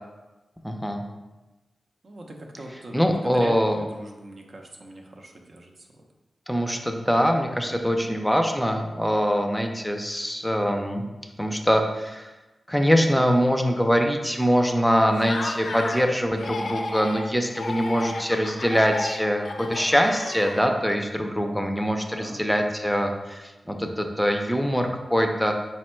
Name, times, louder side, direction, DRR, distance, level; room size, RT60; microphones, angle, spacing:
voice 1, 0.6-1.0 2.9-3.8 6.5-11.0 11.4-12.3 12.7-25.5, equal, 5° left, 3 dB, 0.4 m, -23 dB
voice 2, 2.0-5.9 22.0-22.4, right 1 dB, 65° right, 1 dB, 0.6 m, -41 dB
Laughter, 15.1-16.1 16.4-17.2 17.5-20.9, left 3 dB, 75° left, 0.4 m, -33 dB
4.3 x 2.1 x 4.3 m, 1.1 s
cardioid pair, 50°, 0 cm